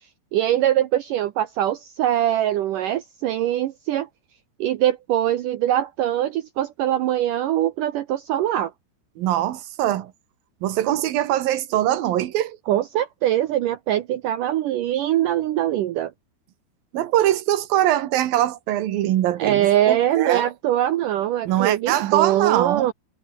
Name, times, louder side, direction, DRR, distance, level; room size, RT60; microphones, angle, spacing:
voice 1, 0.3-4.1 4.6-8.7 12.7-16.1 19.4-22.9, right 12 dB, 85° right, 1.8 m, -22 dB
voice 2, 9.2-10.1 10.6-12.6 16.9-20.5 21.5-22.9, right 13 dB, 65° right, 2.8 m, -22 dB
omnidirectional pair, 5.1 m